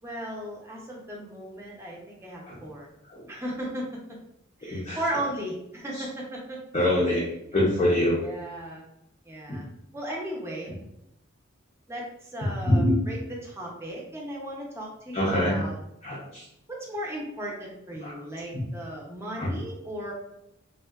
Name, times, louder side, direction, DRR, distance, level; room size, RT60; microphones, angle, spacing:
voice 1, 0.0-2.9 3.3-3.9 4.6-6.6 7.0-7.6 8.2-8.8 9.2-9.6 9.9-10.8 11.9-15.8 16.7-20.1, right 1 dB, 15° right, -3 dB, 0.6 m, -36 dB
voice 2, 6.7-7.2 7.5-8.2 9.5-9.6 12.6-12.9 15.1-15.6 16.0-16.4 18.0-18.1 18.5-18.6 19.4-19.5, left 1 dB, 30° left, -5 dB, 0.5 m, -24 dB
3.5 x 2.1 x 2.3 m, 0.81 s
head